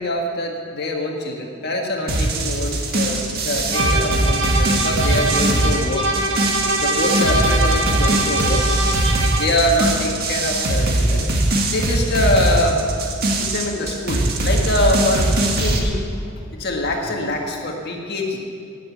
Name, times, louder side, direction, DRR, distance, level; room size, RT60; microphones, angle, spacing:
voice 1, 0.0-3.2 3.4-6.1 6.8-8.6 9.4-11.3 11.7-12.8 13.4-16.0 16.6-18.4, left 1 dB, 50° left, 1 dB, 1.6 m, -24 dB
sound 1, 2.1-15.8, right 1 dB, 50° right, 1.8 m, -21 dB
sound 2, 3.7-9.7, right 1 dB, 65° right, 1.5 m, -23 dB
18.5 x 7.2 x 8.3 m, 2.4 s
head